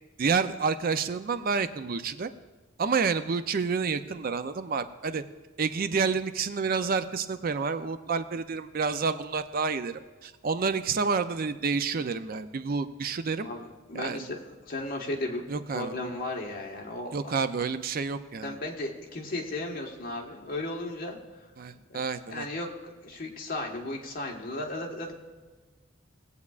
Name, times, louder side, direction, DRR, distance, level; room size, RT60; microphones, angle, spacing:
voice 1, 0.2-2.3 2.8-5.2 5.6-13.5 13.9-14.3 15.5-15.9 17.1-18.5 21.6-22.5, right 5 dB, 50° right, 11 dB, 0.5 m, -29 dB
voice 2, 13.9-14.4 14.7-15.4 15.7-17.2 18.4-21.2 22.3-22.7 23.0-25.1, left 2 dB, 45° left, -1 dB, 1.5 m, -35 dB
19.0 x 8.2 x 2.4 m, 1.3 s
head